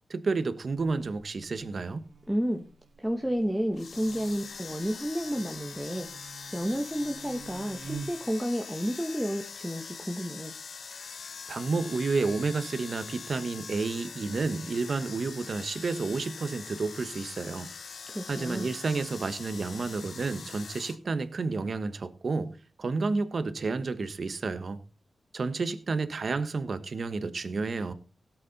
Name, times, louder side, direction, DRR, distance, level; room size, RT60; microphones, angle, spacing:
voice 1, 0.1-2.0 11.5-17.7 18.3-24.8 25.3-27.9, right 4 dB, 50° right, 1.2 m, -31 dB
Buzz, 0.7-8.4, right 5 dB, 80° right, 2.3 m, -48 dB
voice 2, 2.3-2.6 3.0-10.6 18.1-18.7, equal, 5° right, 1.2 m, -31 dB
sound 1, 3.7-21.0, left 5 dB, 70° left, 1.0 m, -43 dB
17.5 x 8.5 x 4.1 m
wide cardioid pair, 120°, 0 cm